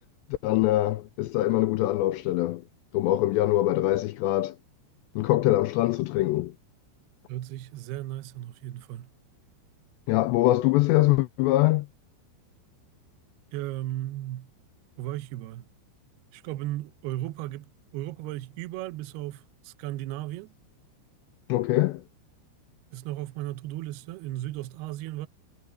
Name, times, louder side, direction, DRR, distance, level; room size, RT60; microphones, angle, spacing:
voice 1, 0.4-2.6 2.9-4.6 5.2-6.5 10.1-11.9 21.5-22.0, left 16 dB, 85° left, 2.5 m, -23 dB
voice 2, 7.3-9.1 13.5-14.5 15.0-15.7 16.3-17.7 17.9-20.5 22.9-25.3, right 15 dB, 80° right, 2.3 m, -35 dB
omnidirectional pair, 5.6 m